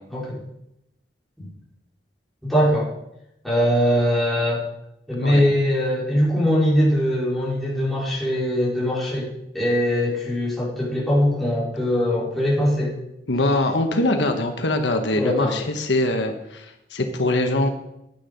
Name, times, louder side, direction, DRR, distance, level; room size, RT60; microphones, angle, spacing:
voice 1, 2.4-2.9 3.4-4.7 5.1-9.3 9.5-12.9 15.2-15.6, equal, ahead, -7 dB, 4.4 m, -21 dB
voice 2, 13.3-17.7, left 1 dB, 85° left, 5 dB, 1.3 m, -23 dB
11.5 x 9.6 x 5.3 m, 0.85 s
head